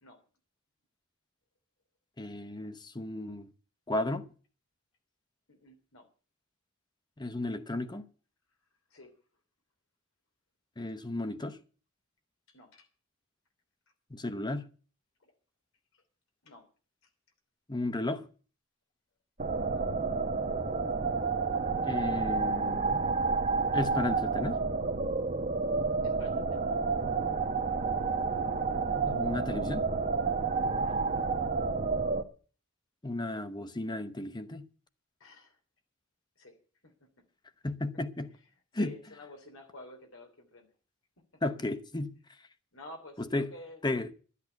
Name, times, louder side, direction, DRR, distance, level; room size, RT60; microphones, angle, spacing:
voice 1, 2.2-3.5 3.9-4.3 7.2-8.0 10.8-11.6 14.1-14.7 17.7-18.2 21.8-23.0 23.7-24.6 29.0-29.9 33.0-34.7 37.6-38.3 38.7-38.9 41.4-42.2 43.3-43.5 43.8-44.1, left 2 dB, 20° left, 0.9 m, -34 dB
voice 2, 5.5-6.1 8.9-9.1 12.5-12.9 15.2-15.3 15.9-16.0 16.4-16.6 19.7-19.9 26.0-26.7 30.8-31.0 35.2-35.6 36.4-36.5 36.8-36.9 38.5-40.7 42.7-43.8, left 2 dB, 80° left, 3.1 m, -50 dB
sound 1, 19.4-32.2, right 4 dB, 40° right, 1.1 m, -30 dB
12.5 x 8.5 x 8.0 m
head